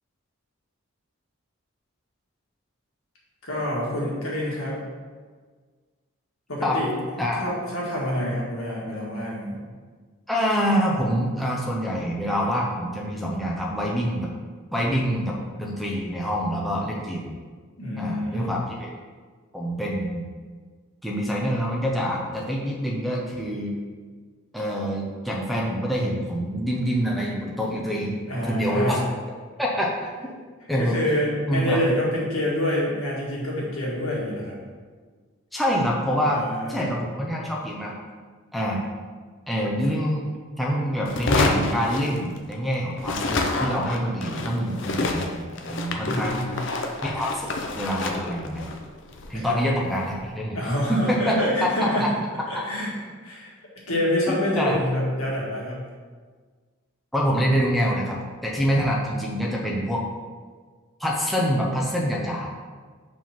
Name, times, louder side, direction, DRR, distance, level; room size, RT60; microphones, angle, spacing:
voice 1, 3.4-4.8 6.5-6.9 7.4-9.6 17.8-18.5 28.3-29.0 30.8-34.6 36.2-36.8 46.0-46.5 49.3-49.6 50.5-52.2 52.5-53.5 53.9-55.8, left 1 dB, 85° left, -5 dB, 1.8 m, -27 dB
voice 2, 10.3-14.3 14.7-17.3 18.0-18.9 19.5-20.3 21.0-23.7 24.5-29.0 29.6-29.9 30.7-31.0 31.5-31.8 35.5-36.4 36.7-38.0 38.5-38.8 39.5-40.3 40.6-46.4 47.0-47.5 47.8-48.7 49.3-50.6 50.9-51.4 51.8-52.1 54.3-54.8 57.1-60.0 61.0-62.5, equal, ahead, -4 dB, 0.6 m, -26 dB
sound 1, 41.1-42.7 43.0-50.2, left 2 dB, 60° left, 0.6 m, -28 dB
5.0 x 3.7 x 5.7 m, 1.5 s
head